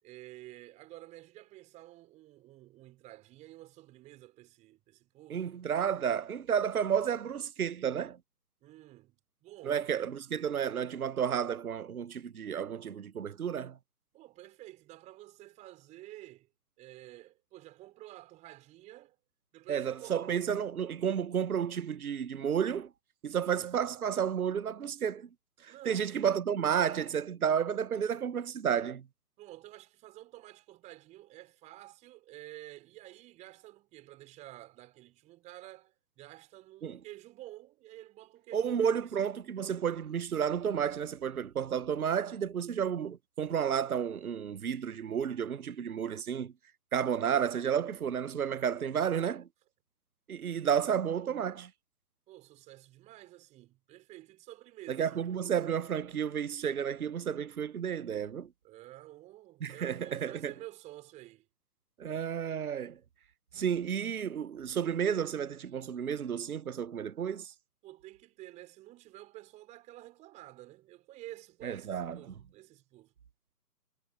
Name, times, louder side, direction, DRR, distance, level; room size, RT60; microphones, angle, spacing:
voice 1, 0.0-5.5 8.6-9.9 14.1-16.5 16.8-19.2 19.5-20.2 23.5-23.7 25.7-26.2 29.4-39.4 52.3-55.3 58.6-61.5 67.8-73.1, right 16 dB, 15° right, 4.8 m, -51 dB
voice 2, 5.3-8.2 9.6-13.8 19.7-22.9 23.2-25.3 25.6-29.0 36.8-37.0 38.5-46.5 46.9-49.5 50.3-51.7 54.9-58.5 59.6-60.5 62.0-63.0 63.5-67.5 71.6-72.2, right 8 dB, 60° right, 0.8 m, -31 dB
figure-of-eight pair, 140°, 49 cm